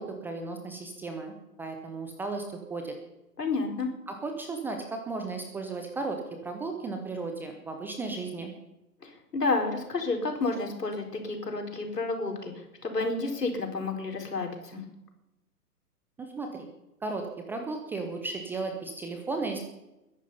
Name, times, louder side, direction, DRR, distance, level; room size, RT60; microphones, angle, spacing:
voice 1, 0.0-2.9 4.1-8.5 16.2-16.7 17.0-19.6, right 3 dB, 5° right, 4 dB, 0.6 m, -35 dB
voice 2, 3.4-3.9 9.0-12.5 12.8-14.8, left 3 dB, 75° left, 3 dB, 4.4 m, -30 dB
21.5 x 11.0 x 5.6 m, 0.93 s
figure-of-eight pair, 120°, 48 cm